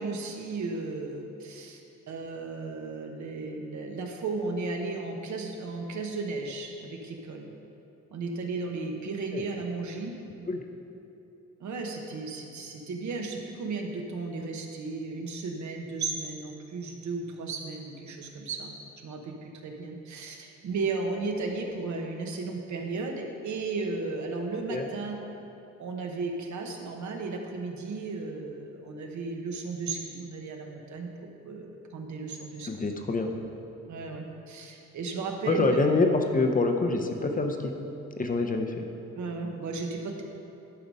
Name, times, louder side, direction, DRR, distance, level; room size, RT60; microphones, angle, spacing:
voice 1, 0.0-1.8 2.1-7.5 8.1-10.1 11.6-25.2 25.8-32.7 33.9-35.9 39.1-40.2, right 3 dB, 75° right, 2 dB, 1.1 m, -35 dB
voice 2, 32.7-33.3 35.5-37.7 38.2-38.9, left 3 dB, 30° left, 4 dB, 0.6 m, -26 dB
11.0 x 4.9 x 5.3 m, 2.9 s
wide cardioid pair, 150°, 29 cm